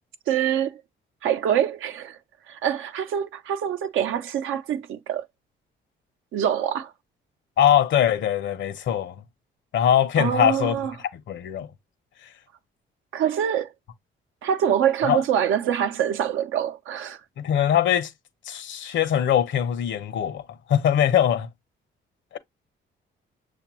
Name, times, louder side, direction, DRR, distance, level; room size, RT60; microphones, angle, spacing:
voice 1, 0.3-0.8 1.2-2.2 2.5-5.3 6.3-6.9 10.2-10.9 13.1-13.7 14.4-17.2, right 9 dB, 85° right, 0.7 m, -25 dB
voice 2, 7.6-9.1 9.7-10.8 11.1-11.7 15.0-15.2 17.4-18.1 18.5-20.4 20.7-21.5 22.3-22.4, left 9 dB, 70° left, 0.8 m, -22 dB
6.7 x 2.4 x 3.0 m
cardioid pair, 90°, 20 cm